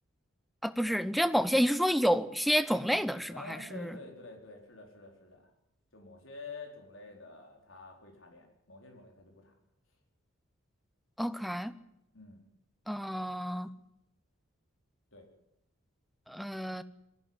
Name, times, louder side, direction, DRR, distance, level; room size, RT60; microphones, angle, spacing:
voice 1, 0.6-3.9 11.2-11.7 12.9-13.7 16.3-16.8, equal, ahead, 12 dB, 0.8 m, -29 dB
voice 2, 3.3-5.5 5.9-9.5 12.1-12.4 15.1-15.3, left 3 dB, 70° left, 2 dB, 4.5 m, -49 dB
22.0 x 15.0 x 9.8 m, 0.83 s
head